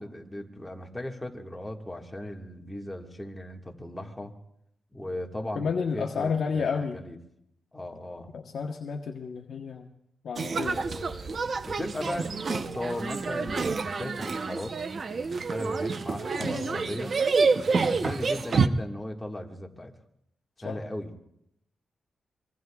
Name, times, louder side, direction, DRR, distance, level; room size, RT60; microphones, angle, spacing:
voice 1, 0.0-4.3 4.9-7.2 7.7-8.3 10.6-14.7 15.1-17.2 17.7-19.9 20.6-21.2, left 1 dB, 10° left, 1 dB, 1.6 m, -37 dB
voice 2, 5.5-7.0 8.3-9.9 10.2-10.8 16.3-16.9 20.6-20.8, left 5 dB, 70° left, 1 dB, 1.0 m, -31 dB
sound 1, 10.4-18.7, right 4 dB, 45° right, 0.7 m, -28 dB
25.0 x 23.0 x 2.3 m, 0.77 s
cardioid pair, 115°, 0 cm